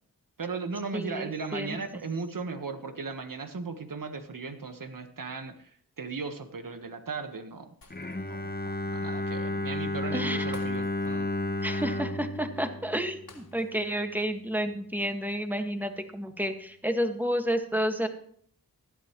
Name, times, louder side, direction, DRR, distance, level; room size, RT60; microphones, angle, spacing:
voice 1, 0.4-5.7 6.0-7.7 8.3-11.3, right 4 dB, 60° right, 8 dB, 1.4 m, -37 dB
voice 2, 0.9-1.8 10.1-10.4 11.6-18.1, equal, 5° right, 5 dB, 1.8 m, -30 dB
Shatter, 7.8-8.5 8.9-9.0 10.5-11.3 11.6-11.8 13.3-14.0 14.3-14.5, left 3 dB, 70° left, 2.9 m, -53 dB
Bowed string instrument, 7.9-13.9, left 1 dB, 25° left, 1.0 m, -33 dB
16.0 x 11.5 x 3.1 m, 0.62 s
cardioid pair, 40°, 36 cm